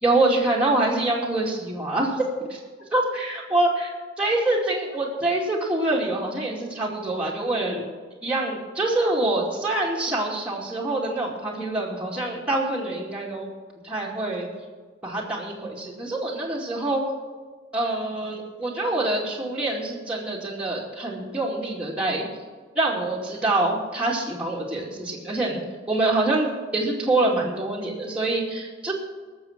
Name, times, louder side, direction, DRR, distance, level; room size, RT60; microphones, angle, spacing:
voice 1, 0.0-2.2 2.5-2.6 2.9-3.9 4.2-7.8 8.2-13.5 13.8-14.5 15.0-17.0 17.7-22.2 22.7-25.6 25.9-26.5 26.7-28.9, right 2 dB, 5° right, -5 dB, 2.4 m, -25 dB
20.0 x 7.1 x 6.0 m, 1.4 s
head